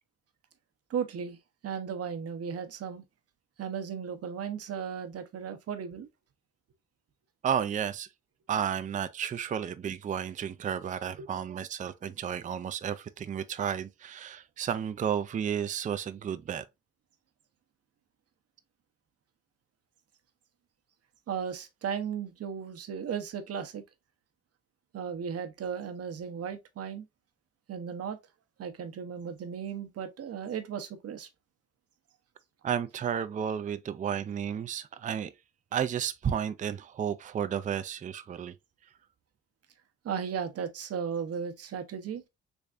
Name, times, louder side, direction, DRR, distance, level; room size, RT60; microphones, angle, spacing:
voice 1, 0.9-1.4 1.6-3.0 3.6-6.1 11.2-11.3 21.3-23.8 24.9-27.0 27.7-28.2 28.6-31.3 40.0-42.2, right 7 dB, 55° right, 0.8 m, -35 dB
voice 2, 7.4-8.1 8.5-16.6 32.6-35.3 35.7-38.5, right 8 dB, 25° right, 0.4 m, -32 dB
3.5 x 3.2 x 2.4 m
cardioid pair, 90°, 30 cm